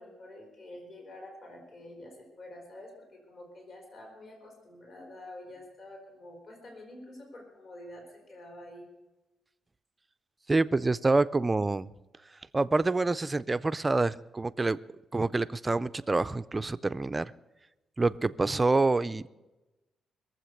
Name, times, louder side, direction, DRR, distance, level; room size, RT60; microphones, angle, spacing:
voice 1, 0.0-8.9, left 1 dB, 50° left, 1 dB, 3.9 m, -48 dB
voice 2, 10.5-11.9 12.5-14.8 15.1-17.2 18.0-19.3, right 3 dB, 15° right, 15 dB, 0.4 m, -27 dB
22.0 x 7.6 x 6.5 m, 1.1 s
cardioid pair, 145°, 0 cm